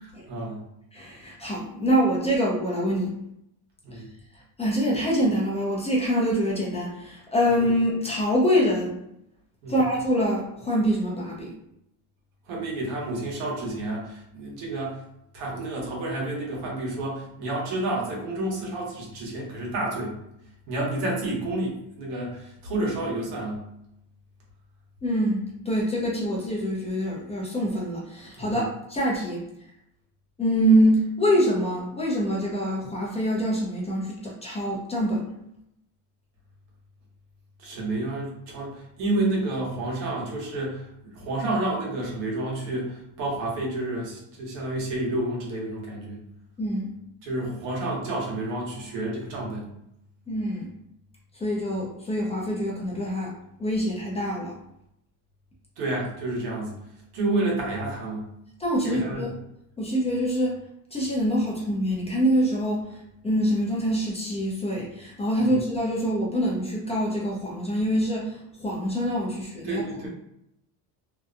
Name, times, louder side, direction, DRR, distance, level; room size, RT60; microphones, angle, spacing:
voice 1, 0.3-0.6 3.8-4.1 9.6-9.8 12.5-15.0 15.3-20.1 20.7-23.6 28.4-28.6 37.6-46.2 47.2-49.7 55.8-56.7 57.1-58.2 58.8-59.2 65.4-65.5 69.6-70.1, right 2 dB, 80° right, -3 dB, 1.1 m, -30 dB
voice 2, 0.9-3.1 3.9-4.0 4.6-8.9 9.7-11.5 25.0-29.4 30.4-35.3 46.6-46.9 50.3-50.7 51.3-53.3 53.6-54.6 58.6-59.3 59.8-60.6 60.9-62.9 63.2-69.8, equal, 15° left, -4 dB, 0.5 m, -25 dB
2.7 x 2.2 x 2.4 m, 0.78 s
supercardioid pair, 120°, 43 cm